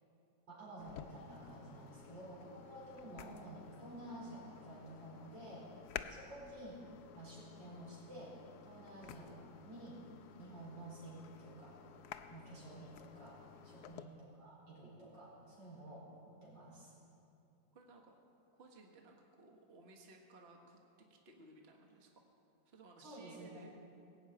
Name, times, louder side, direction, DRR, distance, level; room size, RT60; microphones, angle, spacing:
voice 1, 0.5-5.7 6.1-6.8 7.1-8.3 8.6-10.0 10.4-11.8 12.3-16.0 16.4-16.9 23.0-23.6, right 1 dB, 90° right, -5 dB, 5.0 m, -51 dB
sound 1, 0.8-14.0, left 9 dB, 70° left, 1.1 m, -53 dB
voice 2, 1.6-2.4 8.6-8.9 10.3-10.5 13.6-13.9 17.7-18.1 18.5-20.8 21.1-22.1 22.6-23.8, right 2 dB, 40° right, 1 dB, 1.5 m, -60 dB
19.0 x 7.2 x 8.9 m, 2.7 s
omnidirectional pair, 1.9 m